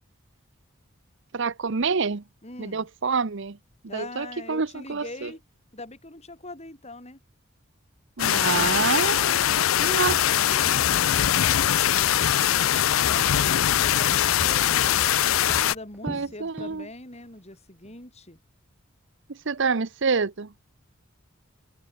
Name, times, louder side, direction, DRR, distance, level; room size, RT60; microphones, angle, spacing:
voice 1, 1.3-2.2 2.6-3.6 3.9-5.3 8.2-9.3 9.8-10.2 16.0-16.9 19.3-20.5, right 5 dB, 60° right, 0.8 m, -27 dB
voice 2, 2.4-2.9 3.9-5.4 5.7-7.2 10.0-14.8 15.4-18.4, left 2 dB, 30° left, 6.0 m, -43 dB
sound 1, 8.2-15.8, left 11 dB, 80° left, 0.5 m, -22 dB
Walk footsteps, 9.5-9.7 10.1-11.4 11.7-13.0 13.3-16.8 17.1-17.4 17.8-17.9, equal, 5° right, 1.4 m, -41 dB
open air
head